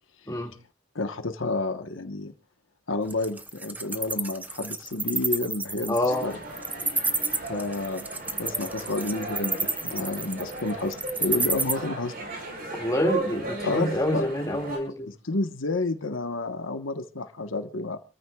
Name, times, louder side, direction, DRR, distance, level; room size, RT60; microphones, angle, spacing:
voice 1, 0.9-2.3 2.9-6.0 6.2-6.4 7.5-8.0 8.4-11.0 11.2-12.2 13.6-13.9 14.1-14.2 15.1-18.0, left 2 dB, 85° left, 8 dB, 1.2 m, -30 dB
Wild animals, 3.1-11.7, right 3 dB, 10° right, 0.7 m, -29 dB
voice 2, 5.9-6.3 12.7-15.1, left 1 dB, 20° left, 2 dB, 2.3 m, -27 dB
sound 1, 6.1-14.8, right 2 dB, 50° right, 4.8 m, -36 dB
28.5 x 14.0 x 2.4 m, 0.31 s
head